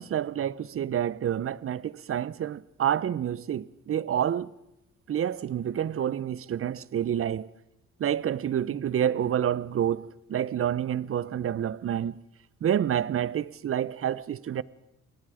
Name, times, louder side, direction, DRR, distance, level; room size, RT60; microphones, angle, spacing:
voice 1, 0.0-4.5 5.1-7.5 8.0-12.2 12.6-14.6, right 10 dB, 45° right, 0.8 m, -28 dB
28.0 x 19.5 x 5.0 m
cardioid pair, 90°, 30 cm